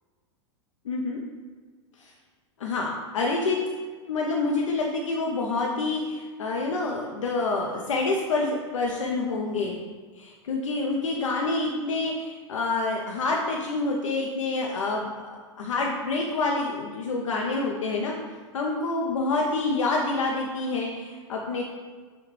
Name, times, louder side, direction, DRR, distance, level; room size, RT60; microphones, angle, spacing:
voice 1, 0.8-1.2 2.0-2.1 2.6-3.6 4.1-9.8 10.2-18.1 18.5-21.6, left 3 dB, 85° left, -1 dB, 0.5 m, -27 dB
5.8 x 2.2 x 3.1 m, 1.5 s
hypercardioid pair, 100°, 16 cm